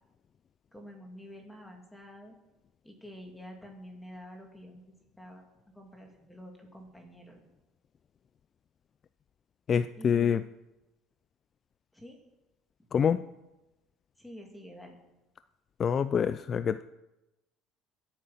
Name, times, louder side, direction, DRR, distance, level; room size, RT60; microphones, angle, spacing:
voice 1, 0.7-2.3 2.8-4.8 5.2-5.4 5.7-7.5 10.0-10.5 11.9-12.2 14.2-15.0, equal, 5° left, 2 dB, 2.9 m, -48 dB
voice 2, 9.7-10.4 12.9-13.2 15.8-16.8, left 7 dB, 35° left, 13 dB, 0.4 m, -26 dB
22.5 x 8.8 x 5.8 m, 0.99 s
cardioid pair, 130°, 0 cm